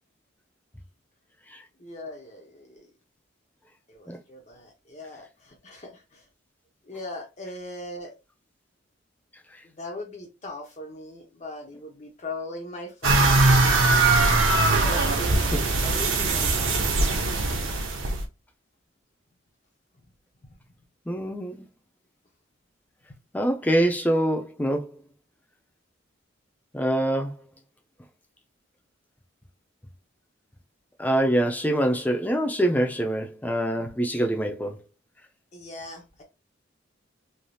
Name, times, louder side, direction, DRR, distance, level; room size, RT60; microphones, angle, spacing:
voice 1, 1.8-2.9 3.9-6.2 6.8-8.1 9.6-13.3 14.7-16.7 21.2-21.3 35.5-36.2, left 1 dB, 35° left, 0.7 m, -39 dB
sound 1, 13.0-18.2, right 2 dB, 85° right, 0.7 m, -21 dB
voice 2, 21.1-21.7 23.3-24.9 26.7-27.3 31.0-34.8, right 1 dB, 10° left, 0.3 m, -24 dB
3.3 x 2.7 x 2.2 m
head